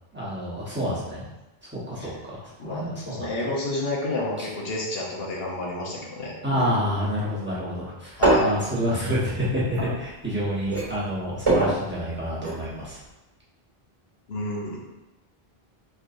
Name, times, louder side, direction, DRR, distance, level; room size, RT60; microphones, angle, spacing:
voice 1, 0.1-1.2 1.7-3.5 6.4-13.0, equal, 10° right, -9 dB, 1.1 m, -28 dB
voice 2, 2.6-6.3 8.2-8.5 14.3-14.8, left 1 dB, 70° left, -2 dB, 1.1 m, -30 dB
sound 1, 8.1-10.4 10.7-12.7 12.9-13.0, right 2 dB, 30° right, 1.4 m, -24 dB
4.5 x 3.0 x 2.6 m, 1.0 s
omnidirectional pair, 1.0 m